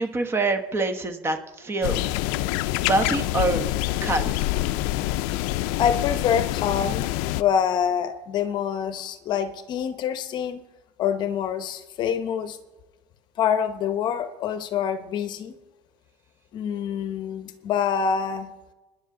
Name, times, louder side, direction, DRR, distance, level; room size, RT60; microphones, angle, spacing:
voice 1, 0.0-2.3 2.8-3.6 4.0-4.5, right 2 dB, 20° right, 7 dB, 1.1 m, -25 dB
sound 1, 1.8-7.4, left 16 dB, 70° left, 0.5 m, -26 dB
voice 2, 5.8-10.6 11.0-12.6 13.4-15.5 16.5-18.5, left 8 dB, 40° left, 10 dB, 0.9 m, -26 dB
25.5 x 10.5 x 3.8 m, 1.2 s
cardioid pair, 155°, 12 cm